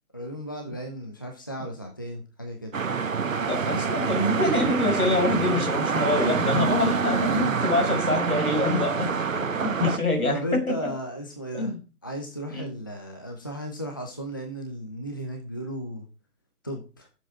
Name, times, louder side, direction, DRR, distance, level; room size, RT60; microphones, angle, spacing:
voice 1, 0.1-2.7 8.6-8.9 10.3-11.7 12.0-16.1 16.6-17.1, equal, 15° left, 3 dB, 0.6 m, -35 dB
sound 1, 2.7-10.0, right 5 dB, 60° right, 1.0 m, -26 dB
voice 2, 3.5-10.9 11.5-11.8 12.5-12.7, left 2 dB, 70° left, 4 dB, 5.5 m, -26 dB
13.0 x 7.5 x 4.7 m, 0.33 s
figure-of-eight pair, 145°, 45 cm